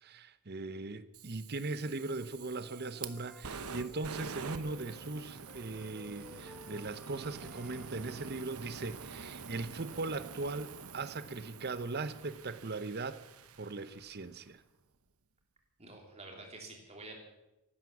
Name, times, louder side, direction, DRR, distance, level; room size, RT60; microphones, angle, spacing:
voice 1, 0.0-13.2 13.6-14.6, right 3 dB, 45° right, 0.8 m, -39 dB
Fire, 1.1-14.3, right 5 dB, 85° right, 1.0 m, -47 dB
Wind instrument woodwind instrument, 2.0-5.1 5.5-9.5, equal, ahead, 1.2 m, -57 dB
voice 2, 15.8-17.2, right 2 dB, 30° right, 3.4 m, -48 dB
14.5 x 12.5 x 7.2 m
head